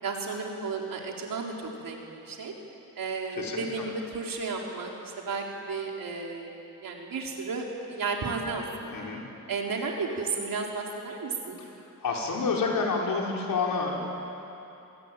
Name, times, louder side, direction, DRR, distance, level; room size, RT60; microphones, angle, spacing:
voice 1, 0.0-2.5 3.0-9.0 9.5-11.6, right 4 dB, 70° right, 0 dB, 4.2 m, -33 dB
voice 2, 3.4-3.9 8.9-9.2 12.0-14.1, left 4 dB, 70° left, -1 dB, 5.2 m, -29 dB
28.0 x 21.0 x 9.1 m, 2.9 s
wide cardioid pair, 110°, 35 cm